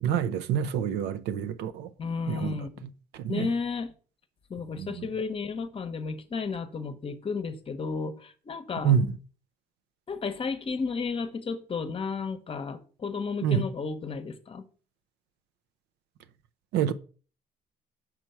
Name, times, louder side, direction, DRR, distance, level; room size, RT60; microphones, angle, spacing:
voice 1, 0.0-1.9 2.3-2.6 3.2-3.5 4.8-5.1 8.8-9.1 13.4-13.6 16.7-16.9, right 8 dB, 85° right, 0.6 m, -27 dB
voice 2, 2.0-2.8 3.3-3.9 4.5-9.0 10.1-14.6, left 5 dB, 35° left, 0.9 m, -33 dB
5.9 x 4.6 x 5.6 m
cardioid pair, 110°, 17 cm